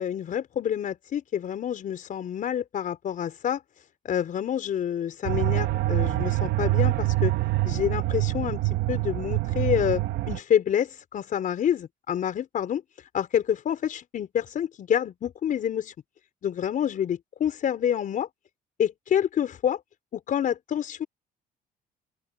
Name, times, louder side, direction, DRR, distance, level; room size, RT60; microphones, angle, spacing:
voice 1, 0.0-3.6 4.0-7.3 7.6-12.8 13.1-15.9 16.4-18.3 18.8-19.8 20.1-21.1, left 9 dB, 55° left, 4.7 m, -28 dB
sound 1, 5.3-10.4, right 17 dB, 80° right, 1.5 m, -25 dB
open air
cardioid pair, 110°, 17 cm